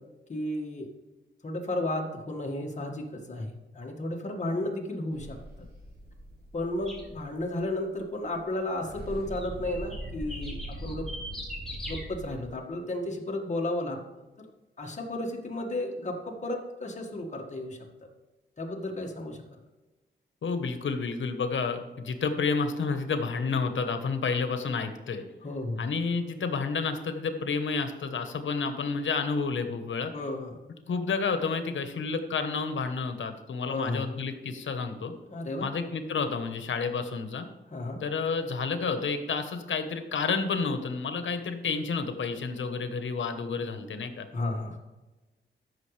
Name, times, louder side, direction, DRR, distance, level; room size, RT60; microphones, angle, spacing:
voice 1, 0.3-0.9 1.4-5.4 6.5-10.6 10.8-11.1 11.9-14.0 14.8-17.8 18.6-19.4 25.4-25.9 30.1-30.6 33.7-34.1 35.3-35.7 37.7-38.0 44.3-44.8, left 1 dB, 40° left, 0 dB, 1.8 m, -33 dB
sound 1, 5.1-8.0 8.3-8.4 8.7-12.5, equal, 55° right, 3.2 m, -41 dB
sound 2, 6.9-7.1 9.3-12.1, left 1 dB, ahead, 2.8 m, -41 dB
voice 2, 20.4-25.2 25.8-30.1 30.9-35.1 35.6-37.5 38.0-44.3, left 5 dB, 85° left, 8 dB, 1.1 m, -30 dB
14.0 x 6.4 x 3.3 m, 1.1 s
wide cardioid pair, 125°, 19 cm